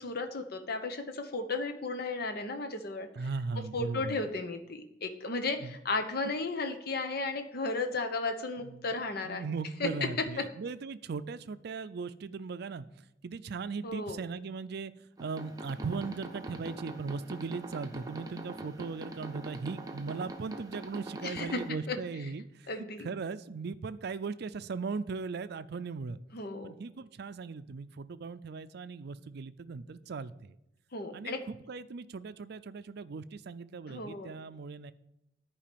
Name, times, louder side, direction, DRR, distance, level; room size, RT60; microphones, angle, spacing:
voice 1, 0.0-3.1 3.7-9.4 9.8-9.9 13.8-14.2 21.2-22.0 22.7-23.1 26.3-26.7 30.9-31.5 33.9-34.3, left 3 dB, 60° left, 7 dB, 1.0 m, -34 dB
voice 2, 3.1-4.2 5.6-5.8 8.6-8.9 9.2-12.9 13.2-14.9 15.2-26.2 26.6-30.6 31.1-34.9, right 4 dB, 60° right, 14 dB, 0.5 m, -38 dB
sound 1, 15.2-21.7, right 2 dB, 20° right, 0.8 m, -44 dB
10.5 x 4.9 x 6.8 m, 0.83 s
head